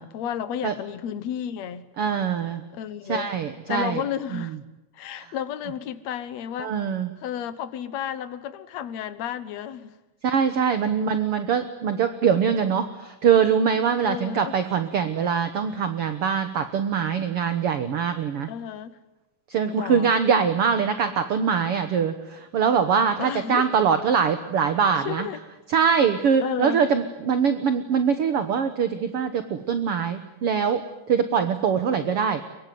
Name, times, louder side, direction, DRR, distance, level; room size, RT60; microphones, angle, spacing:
voice 1, 0.0-1.9 2.7-3.3 3.7-4.6 4.9-6.7 7.2-9.9 14.0-14.6 18.5-19.0 19.7-20.1 23.2-23.7 25.1-25.4 26.4-26.8, left 9 dB, 60° left, 2.3 m, -32 dB
voice 2, 2.0-2.6 3.1-4.0 4.3-4.5 5.2-5.3 6.6-7.1 10.2-18.5 19.5-25.3 25.7-30.8 31.1-32.5, right 7 dB, 55° right, 1.8 m, -23 dB
23.5 x 23.0 x 9.5 m
omnidirectional pair, 3.7 m